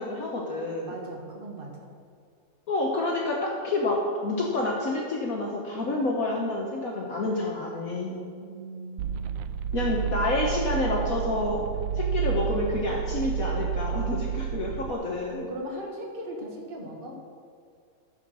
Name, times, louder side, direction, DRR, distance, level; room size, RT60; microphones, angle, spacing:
voice 1, 0.0-0.9 2.7-8.2 9.7-11.6 11.9-15.5, left 2 dB, 55° left, -2 dB, 1.5 m, -28 dB
voice 2, 0.9-1.9 8.4-9.6 15.5-17.2, right 1 dB, 30° right, -1 dB, 1.8 m, -39 dB
sound 1, 9.0-14.9, right 8 dB, 85° right, 1.3 m, -30 dB
13.5 x 5.8 x 6.2 m, 2.2 s
omnidirectional pair, 2.0 m